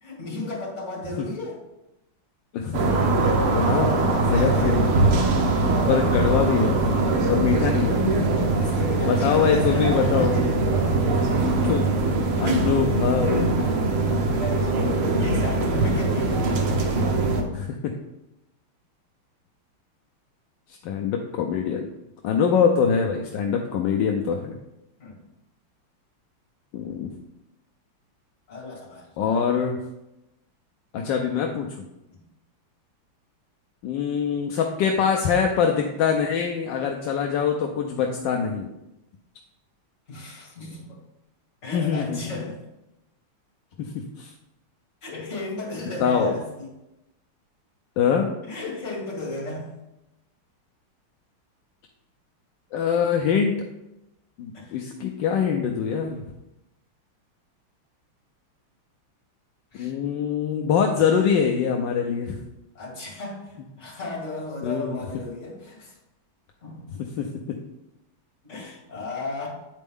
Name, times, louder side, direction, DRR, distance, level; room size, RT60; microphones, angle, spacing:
voice 1, 0.0-1.6 4.3-4.9 8.6-10.4 10.7-11.1 14.0-16.4 25.0-25.2 28.5-29.1 32.1-32.2 40.1-41.0 41.6-42.6 45.0-46.7 48.4-49.8 54.5-54.8 59.7-59.9 62.7-66.0 66.6-67.1 68.4-69.5, left 2 dB, 35° left, -4 dB, 2.4 m, -34 dB
voice 2, 2.5-2.9 3.2-3.9 4.3-4.9 5.6-8.0 9.0-10.3 11.4-12.0 12.4-13.5 17.5-17.9 20.8-21.8 22.2-24.6 26.7-27.1 29.2-29.8 30.9-31.8 33.8-38.7 41.7-42.2 43.8-44.3 46.0-46.3 48.0-48.3 52.7-53.5 54.4-56.2 59.7-62.4 64.6-65.0 67.2-67.3, left 7 dB, 70° left, 2 dB, 1.2 m, -24 dB
sound 1, 2.7-17.4, right 2 dB, 85° right, 1.8 m, -22 dB
9.2 x 4.3 x 3.5 m, 0.90 s
omnidirectional pair, 2.4 m